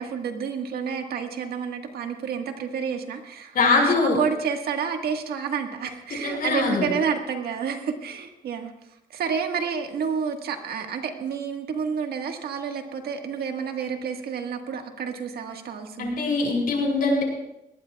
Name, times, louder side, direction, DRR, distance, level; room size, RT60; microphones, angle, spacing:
voice 1, 0.0-8.7 9.1-16.1, right 6 dB, 90° right, 4 dB, 1.5 m, -29 dB
voice 2, 3.5-4.2 6.2-6.9 16.0-17.2, left 3 dB, 70° left, 0 dB, 5.4 m, -22 dB
21.0 x 18.0 x 2.3 m, 0.87 s
cardioid pair, 95°, 16 cm